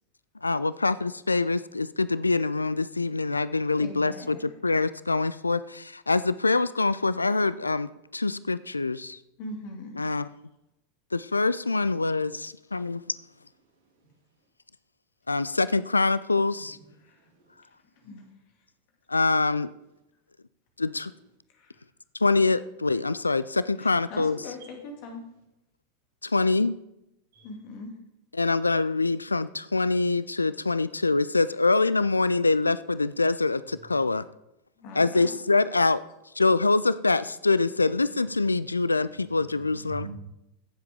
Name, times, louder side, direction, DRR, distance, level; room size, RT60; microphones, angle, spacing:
voice 1, 0.4-4.4 4.6-9.2 10.0-10.3 11.1-13.0 15.3-16.8 19.1-19.7 20.8-21.1 22.2-24.4 26.2-26.7 28.3-34.2 35.0-36.0 36.4-40.1, left 3 dB, 80° left, 17 dB, 0.3 m, -25 dB
voice 2, 3.8-4.5 9.4-10.0 17.0-17.3 17.8-18.2 21.5-21.8 23.8-25.2 27.4-27.9 34.8-35.4, left 2 dB, 45° left, 2 dB, 2.6 m, -41 dB
voice 3, 13.6-14.2 16.6-17.7 18.0-18.1 24.6-24.7 27.3-27.5 37.7-38.6 39.0-40.2, right 6 dB, 55° right, 1 dB, 3.0 m, -48 dB
16.0 x 7.5 x 3.6 m, 0.87 s
figure-of-eight pair, 90°, 0 cm